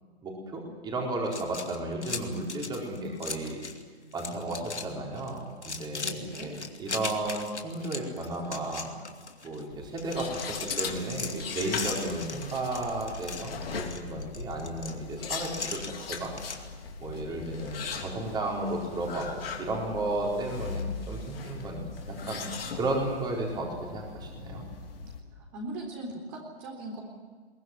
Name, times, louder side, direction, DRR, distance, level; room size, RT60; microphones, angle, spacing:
voice 1, 0.2-3.6 4.1-8.9 9.4-15.8 16.1-16.3 17.0-24.6, right 2 dB, 10° right, -1 dB, 4.2 m, -33 dB
sound 1, 1.3-3.8 4.1-4.9 5.2-9.6 10.0-16.6, left 4 dB, 85° left, 2.4 m, -38 dB
voice 2, 6.0-6.5 25.4-27.0, right 2 dB, 30° right, 0 dB, 3.8 m, -39 dB
sound 2, 9.7-25.2, left 5 dB, 60° left, 3.6 m, -39 dB
22.0 x 18.5 x 9.5 m, 1.6 s
figure-of-eight pair, 140°, 33 cm